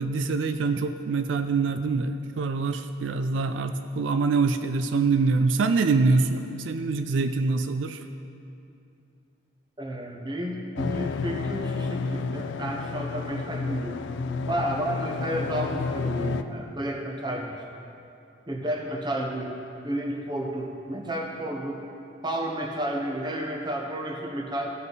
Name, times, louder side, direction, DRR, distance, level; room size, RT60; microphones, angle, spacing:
voice 1, 0.0-8.0, right 4 dB, 80° right, 8 dB, 0.4 m, -25 dB
voice 2, 9.8-14.0 14.5-17.6 18.5-19.5 19.8-21.8 22.2-24.7, right 1 dB, 25° right, 1 dB, 0.9 m, -31 dB
sound 1, 10.8-16.4, left 4 dB, 75° left, 0.4 m, -31 dB
15.0 x 5.5 x 4.0 m, 2.6 s
head